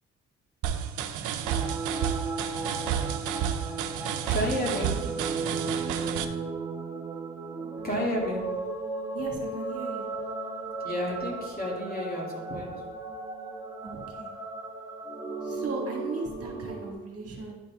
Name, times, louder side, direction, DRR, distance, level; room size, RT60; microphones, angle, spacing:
sound 1, 0.6-6.3, right 9 dB, 85° right, 0.6 m, -31 dB
sound 2, 1.4-16.9, right 3 dB, 10° right, 1.1 m, -35 dB
voice 1, 4.3-5.0 7.8-8.5 10.8-12.8, equal, 30° left, -3 dB, 2.5 m, -31 dB
voice 2, 9.1-10.0 13.8-14.3 15.4-17.5, right 3 dB, 50° right, 0 dB, 1.7 m, -37 dB
11.5 x 4.1 x 3.6 m, 1.2 s
cardioid pair, 90°, 30 cm